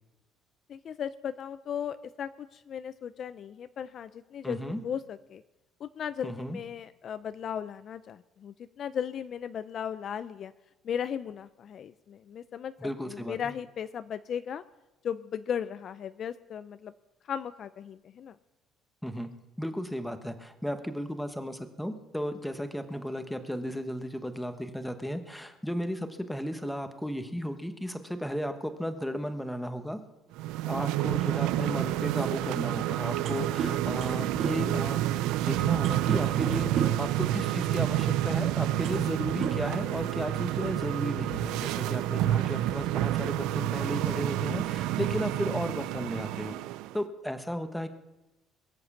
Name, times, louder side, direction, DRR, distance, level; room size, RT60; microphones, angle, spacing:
voice 1, 0.7-5.4 5.8-10.5 10.8-14.6 15.0-16.9 17.3-18.4, left 8 dB, 45° left, 13 dB, 0.5 m, -36 dB
voice 2, 4.4-4.8 6.2-6.6 12.8-13.5 19.0-19.3 19.6-30.0 30.7-35.1 35.5-46.6 46.9-47.9, equal, ahead, 8 dB, 1.2 m, -34 dB
sound 1, 30.3-47.0, right 14 dB, 85° right, 0.5 m, -29 dB
sound 2, 33.2-37.1 38.1-38.3 38.7-39.1 39.4-40.3, right 6 dB, 60° right, 1.8 m, -35 dB
22.0 x 7.8 x 7.3 m, 1.0 s
cardioid pair, 125°, 0 cm